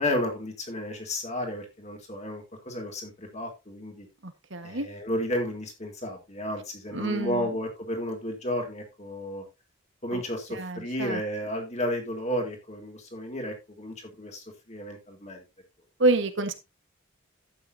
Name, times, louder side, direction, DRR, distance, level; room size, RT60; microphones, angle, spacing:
voice 1, 0.0-4.1 4.6-9.4 10.0-15.4, left 1 dB, 30° left, 2 dB, 3.5 m, -32 dB
voice 2, 4.2-4.9 6.9-7.5 10.1-10.2 10.5-11.2 16.0-16.5, right 2 dB, 60° right, 8 dB, 1.5 m, -28 dB
12.0 x 9.0 x 2.8 m, 0.24 s
head